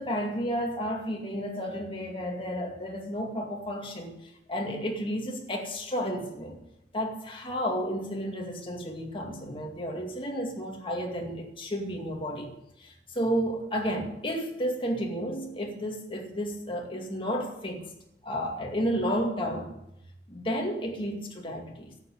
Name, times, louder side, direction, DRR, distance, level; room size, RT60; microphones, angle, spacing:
voice 1, 0.0-4.2 4.5-6.6 6.9-12.5 12.8-17.9 18.2-19.7 20.3-21.9, equal, 30° left, 2.3 m, -32 dB
12.0 x 7.7 x 9.3 m
head